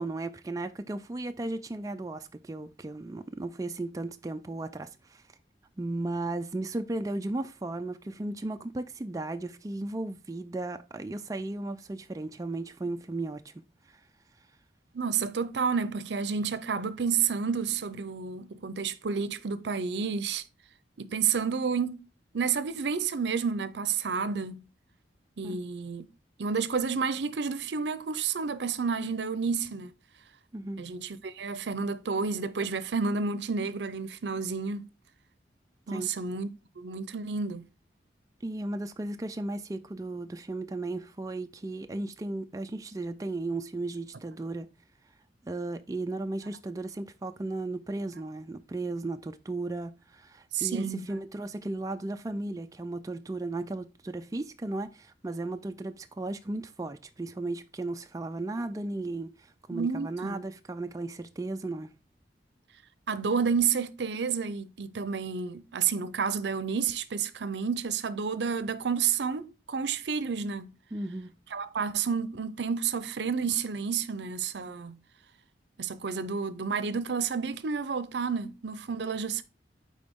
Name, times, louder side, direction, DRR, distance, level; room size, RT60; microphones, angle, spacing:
voice 1, 0.0-5.2 5.8-13.5 13.9-14.0 25.4-25.6 30.5-30.8 35.9-36.1 38.4-44.7 45.5-61.9 70.9-71.3, right 2 dB, 20° right, 0.4 m, -35 dB
voice 2, 14.9-20.4 21.0-22.0 22.3-24.6 25.4-26.1 26.4-29.9 30.8-34.8 35.9-36.5 36.8-37.7 50.5-51.1 59.7-60.4 63.1-70.7 71.5-75.0 75.8-79.4, right 6 dB, 75° right, 0.6 m, -30 dB
9.2 x 3.8 x 3.6 m
head